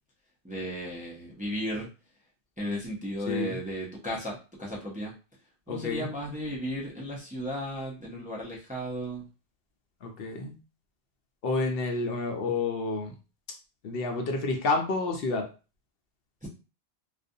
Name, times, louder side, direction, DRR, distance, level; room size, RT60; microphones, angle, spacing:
voice 1, 0.4-1.9 2.6-5.2 5.7-9.3 16.4-16.5, equal, 10° right, -3 dB, 0.4 m, -35 dB
voice 2, 3.3-3.6 5.7-6.1 10.0-10.6 11.4-13.1 13.8-15.5, left 3 dB, 65° left, 4 dB, 0.7 m, -29 dB
2.4 x 2.2 x 2.6 m, 0.34 s
omnidirectional pair, 1.1 m